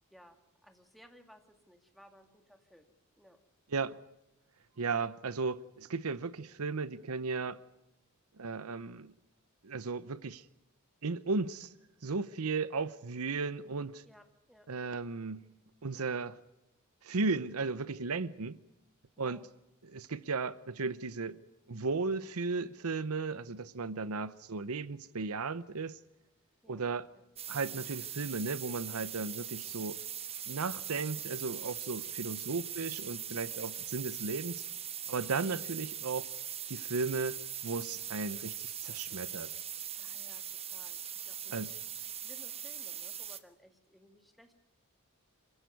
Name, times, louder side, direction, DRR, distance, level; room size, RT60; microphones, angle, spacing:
voice 1, 0.1-2.9 3.2-3.4 14.0-14.7 19.2-19.5 26.6-27.3 33.4-33.8 35.2-35.5 40.0-40.4 40.7-41.0 41.2-41.8 42.1-44.5, equal, ahead, 2.1 m, -59 dB
voice 2, 4.8-7.6 8.4-9.1 9.6-10.4 11.0-11.7 12.0-14.0 14.7-15.5 15.8-16.4 17.0-18.6 19.2-19.4 19.8-21.4 21.7-26.0 26.7-27.1 27.5-30.0 30.5-34.6 35.1-36.3 36.7-39.5 41.5-41.7, right 4 dB, 75° right, 0.8 m, -35 dB
sound 1, 27.4-43.4, right 9 dB, 25° right, 1.2 m, -41 dB
27.0 x 15.5 x 9.6 m
head